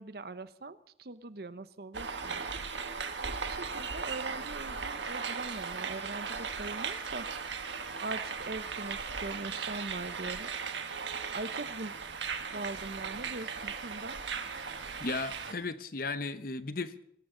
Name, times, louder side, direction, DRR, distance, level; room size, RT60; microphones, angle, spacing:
voice 1, 0.0-2.4 3.3-7.3 8.0-10.5 11.3-11.9 12.5-14.2, right 2 dB, 55° right, 0.8 m, -41 dB
sound 1, 1.9-15.5, right 5 dB, 80° right, 1.5 m, -37 dB
voice 2, 15.0-17.0, left 3 dB, 50° left, 0.9 m, -35 dB
24.5 x 13.5 x 3.9 m
head